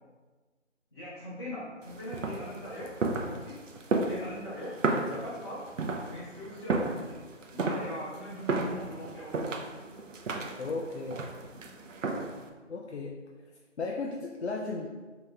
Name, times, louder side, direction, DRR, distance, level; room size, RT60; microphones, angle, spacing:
voice 1, 0.9-3.6 4.0-4.8 5.1-5.7 6.1-7.2 7.5-9.7, equal, 20° left, -12 dB, 0.8 m, -41 dB
sound 1, 1.8-12.5, right 3 dB, 85° right, 0.6 m, -33 dB
voice 2, 10.6-11.2 12.7-13.2 13.8-14.9, left 3 dB, 65° left, -2 dB, 0.5 m, -35 dB
3.5 x 2.9 x 3.3 m, 1.3 s
figure-of-eight pair, 170°, 37 cm